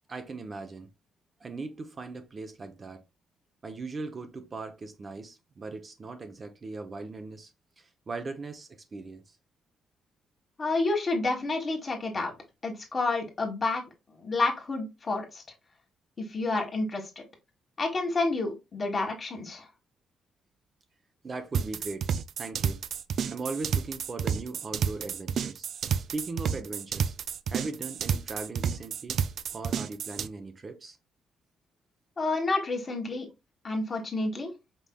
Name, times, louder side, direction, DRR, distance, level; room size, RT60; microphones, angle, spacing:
voice 1, 0.1-0.9 1.4-3.0 3.6-7.5 7.8-9.4 21.2-22.1 22.4-22.8 23.3-25.7 26.1-27.1 27.5-29.2 29.5-31.0, right 3 dB, 35° right, 0.7 m, -39 dB
voice 2, 10.6-12.3 12.6-13.8 14.2-15.4 16.2-17.1 17.8-19.7 32.2-33.3 33.6-34.5, left 3 dB, 35° left, 1.4 m, -29 dB
sound 1, 21.5-30.3, right 7 dB, 65° right, 0.3 m, -30 dB
5.3 x 3.2 x 2.2 m
cardioid pair, 90°, 0 cm